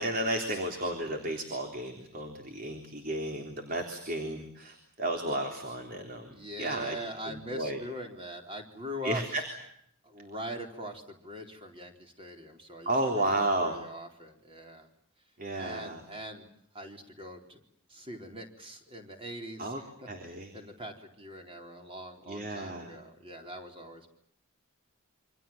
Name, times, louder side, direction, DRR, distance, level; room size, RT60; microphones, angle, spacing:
voice 1, 0.0-7.0 7.5-7.8 9.0-9.4 12.9-13.8 15.4-16.0 19.6-19.8 20.1-20.5 22.3-22.9, right 1 dB, 40° right, 4 dB, 3.6 m, -32 dB
voice 2, 6.3-9.2 10.0-14.9 15.5-16.5 16.7-17.6 17.9-24.1, equal, 25° right, 4 dB, 4.1 m, -42 dB
28.5 x 25.5 x 7.3 m, 0.71 s
head